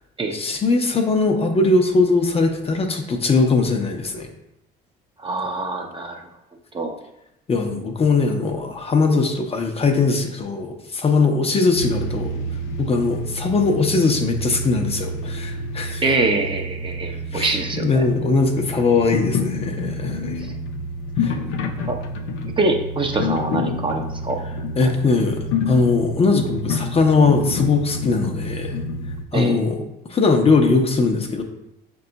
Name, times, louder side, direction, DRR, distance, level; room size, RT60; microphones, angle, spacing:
voice 1, 0.3-4.3 7.5-12.3 12.8-16.0 17.3-17.5 17.8-20.4 21.2-21.4 24.8-28.8 29.3-29.8 30.1-31.4, left 3 dB, 30° left, 4 dB, 0.6 m, -20 dB
voice 2, 5.2-6.2 6.7-7.0 16.0-18.0 20.4-20.5 21.9-22.0 22.6-24.4 24.8-24.9 29.3-29.6, right 3 dB, 25° right, 3 dB, 0.6 m, -24 dB
sound 1, 11.7-29.2, left 2 dB, 80° left, 0.5 m, -28 dB
5.3 x 2.3 x 3.9 m, 0.85 s
supercardioid pair, 80°, 20 cm